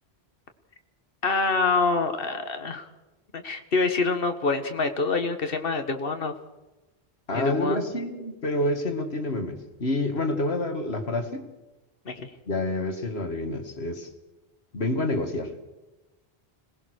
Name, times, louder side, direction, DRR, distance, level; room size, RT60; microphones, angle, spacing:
voice 1, 1.2-2.9 3.3-6.3 7.3-7.8 12.1-12.3, left 4 dB, 60° left, 8 dB, 1.8 m, -26 dB
voice 2, 7.3-11.5 12.5-14.1 14.7-15.5, left 1 dB, 75° left, 7 dB, 2.4 m, -28 dB
26.0 x 19.5 x 6.5 m, 1.1 s
omnidirectional pair, 1.1 m